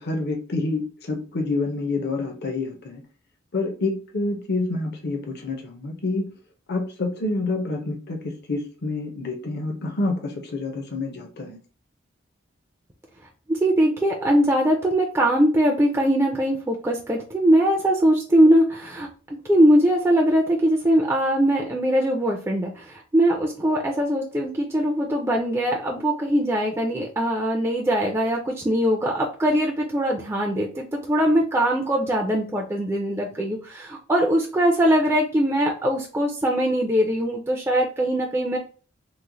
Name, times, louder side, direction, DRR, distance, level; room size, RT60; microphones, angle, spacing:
voice 1, 0.0-3.0 3.5-6.3 6.7-8.2 8.5-11.6, left 3 dB, 55° left, 3 dB, 0.6 m, -27 dB
voice 2, 13.5-19.1 19.4-38.6, equal, 15° right, 0 dB, 0.4 m, -21 dB
3.0 x 2.1 x 3.7 m, 0.38 s
head